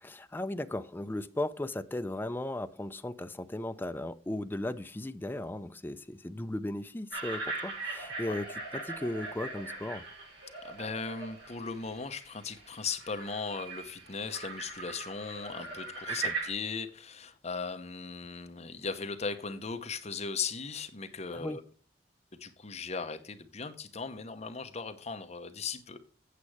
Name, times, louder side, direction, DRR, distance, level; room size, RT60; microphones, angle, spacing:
voice 1, 0.0-10.0 16.1-16.3 21.3-21.6, left 1 dB, 10° left, 0.4 m, -36 dB
sound 1, 7.1-16.5, right 3 dB, 80° right, 6.0 m, -40 dB
voice 2, 10.6-21.6 22.4-26.0, left 5 dB, 35° left, 0.9 m, -38 dB
8.4 x 7.4 x 4.8 m
head